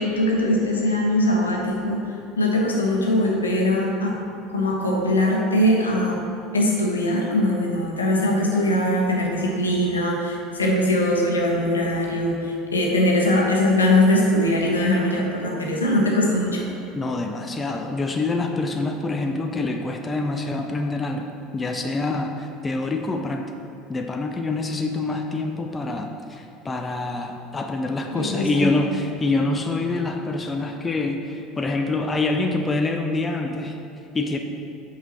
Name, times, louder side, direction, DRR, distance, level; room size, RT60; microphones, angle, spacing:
voice 1, 0.0-4.2 4.5-6.2 6.5-16.6 28.2-28.7, left 1 dB, 80° left, -2 dB, 1.2 m, -21 dB
voice 2, 17.0-23.5 23.9-33.8 34.1-34.4, left 2 dB, 20° left, 4 dB, 0.6 m, -26 dB
8.3 x 5.5 x 4.3 m, 2.7 s
figure-of-eight pair, 70°, 0 cm